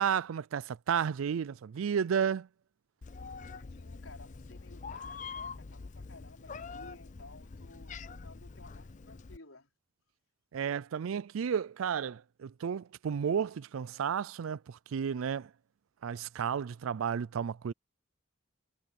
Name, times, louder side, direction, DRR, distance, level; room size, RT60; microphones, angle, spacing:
voice 1, 0.0-2.5 10.5-15.5 16.0-17.7, right 7 dB, 85° right, 0.4 m, -32 dB
Meow, 3.0-9.4, left 4 dB, 35° left, 0.5 m, -45 dB
voice 2, 3.3-9.7, left 2 dB, 90° left, 4.5 m, -55 dB
head